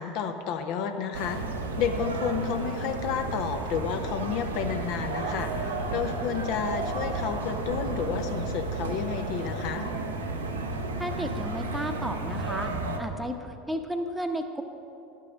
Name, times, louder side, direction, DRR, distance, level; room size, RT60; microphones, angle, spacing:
voice 1, 0.0-1.4 1.8-9.9, left 7 dB, 55° left, 6 dB, 0.7 m, -31 dB
sound 1, 1.1-13.0, right 3 dB, 80° right, 0.8 m, -32 dB
voice 2, 11.0-12.7 13.0-14.6, equal, 5° right, 5 dB, 0.8 m, -33 dB
11.5 x 5.6 x 6.3 m, 2.8 s
figure-of-eight pair, 75°, 0 cm